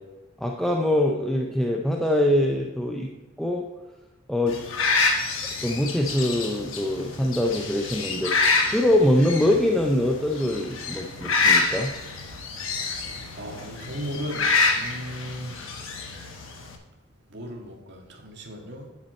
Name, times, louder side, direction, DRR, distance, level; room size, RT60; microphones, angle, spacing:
voice 1, 0.4-3.1 3.4-3.6 4.3-4.6 5.6-11.9, left 1 dB, ahead, 0 dB, 0.5 m, -23 dB
sound 1, 4.5-16.8, left 4 dB, 70° left, 1.2 m, -27 dB
voice 2, 13.4-14.5 14.7-15.5 17.3-18.8, equal, 55° right, 1 dB, 1.7 m, -36 dB
9.4 x 7.1 x 4.3 m, 1.1 s
head